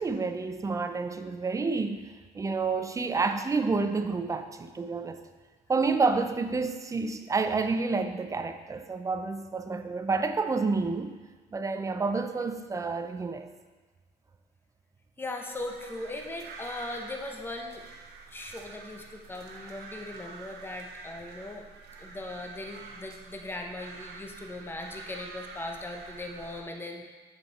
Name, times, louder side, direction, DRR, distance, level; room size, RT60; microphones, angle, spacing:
voice 1, 0.0-2.1 2.3-5.2 5.7-11.2 11.5-13.5, right 4 dB, 20° right, 8 dB, 0.5 m, -29 dB
voice 2, 15.2-17.8 18.3-21.6 22.0-27.1, left 2 dB, 15° left, 2 dB, 0.8 m, -39 dB
sound 1, 15.5-26.6, right 4 dB, 75° right, 0.9 m, -47 dB
7.7 x 5.5 x 4.2 m, 1.3 s
cardioid pair, 110°, 17 cm